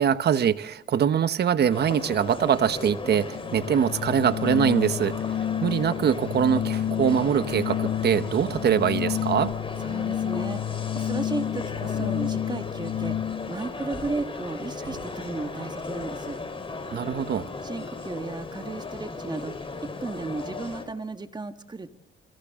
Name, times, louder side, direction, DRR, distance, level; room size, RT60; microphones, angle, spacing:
voice 1, 0.0-5.2 5.6-9.5 16.9-17.5, right 8 dB, 55° right, 1.1 m, -23 dB
sound 1, 1.7-20.9, left 3 dB, 25° left, 4.4 m, -36 dB
Organ, 3.3-13.6, left 10 dB, 75° left, 1.1 m, -30 dB
sound 2, 7.0-12.0 12.6-13.3 13.7-13.8 14.0-18.0 18.3-19.0, right 5 dB, 85° right, 4.7 m, -52 dB
voice 2, 9.8-10.6 10.9-13.2 13.5-16.4 17.6-21.9, right 3 dB, 20° right, 1.7 m, -34 dB
29.5 x 23.0 x 3.8 m
cardioid pair, 90°, 20 cm